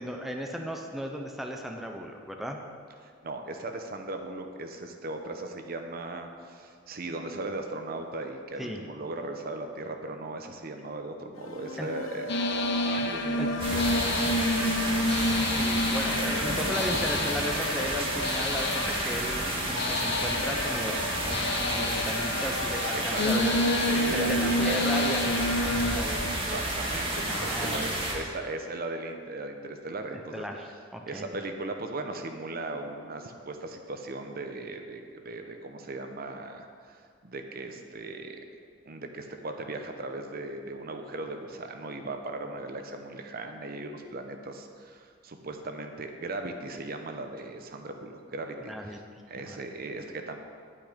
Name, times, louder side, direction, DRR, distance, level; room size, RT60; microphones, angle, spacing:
voice 1, 0.0-2.6 8.6-8.8 11.8-11.9 13.4-13.5 15.0-23.6 24.1-26.2 27.3-27.9 30.3-31.2 48.7-49.0 49.4-49.6, equal, ahead, 2 dB, 0.7 m, -36 dB
voice 2, 3.0-14.3 22.9-23.2 23.9-24.7 26.0-30.5 31.0-38.4 38.9-49.0 49.3-50.4, right 2 dB, 50° right, 5 dB, 0.9 m, -38 dB
sound 1, 11.3-26.4, left 3 dB, 85° left, 0.5 m, -38 dB
sound 2, 12.3-26.0, left 1 dB, 60° left, 0.9 m, -29 dB
sound 3, 13.6-28.1, right 1 dB, 30° right, 2.1 m, -31 dB
10.5 x 8.9 x 5.1 m, 2.2 s
head